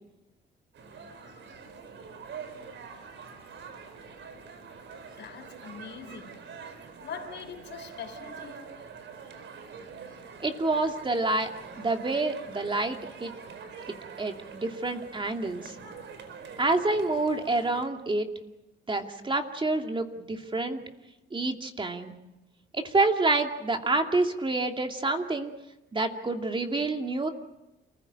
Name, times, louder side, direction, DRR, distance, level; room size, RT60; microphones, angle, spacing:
sound 1, 0.7-17.8, right 6 dB, 70° right, 4.7 m, -45 dB
voice 1, 5.2-6.4 7.0-8.7, left 7 dB, 65° left, 7 dB, 3.8 m, -42 dB
voice 2, 10.4-11.5 11.8-13.3 13.9-15.7 16.6-18.3 18.9-20.8 21.3-22.1 22.7-25.5 25.9-27.3, right 2 dB, 25° right, 4 dB, 2.6 m, -28 dB
28.5 x 16.0 x 8.8 m, 0.96 s
cardioid pair, 90°, 20 cm